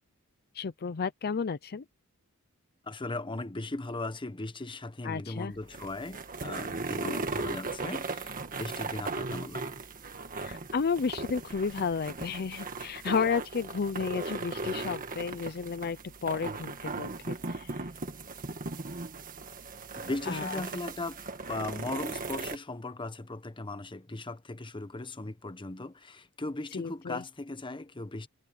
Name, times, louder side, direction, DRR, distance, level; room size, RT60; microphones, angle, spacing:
voice 1, 0.5-1.8 5.0-5.5 7.0-7.2 10.4-17.9 20.3-20.6 26.7-27.2, left 5 dB, 45° left, 0.5 m, -32 dB
voice 2, 2.9-9.8 20.0-21.2 21.5-28.3, left 2 dB, 20° left, 1.0 m, -38 dB
sound 1, 5.5-22.6, right 3 dB, 40° right, 1.7 m, -37 dB
head